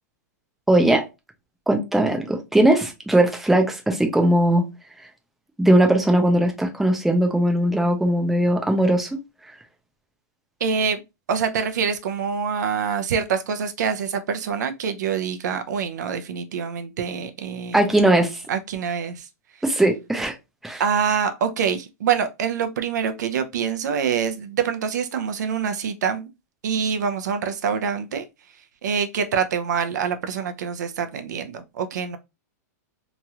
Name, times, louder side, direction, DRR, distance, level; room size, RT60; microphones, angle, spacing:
voice 1, 0.7-1.1 1.7-4.6 5.6-9.1 17.7-18.4 19.6-20.3 20.6-20.8, right 1 dB, ahead, 0.4 m, -19 dB
voice 2, 10.6-11.0 11.3-17.8 18.5-19.3 20.8-26.3 26.6-28.2 28.8-32.2, right 6 dB, 90° right, 0.5 m, -25 dB
3.0 x 2.4 x 2.7 m
supercardioid pair, 160°, 9 cm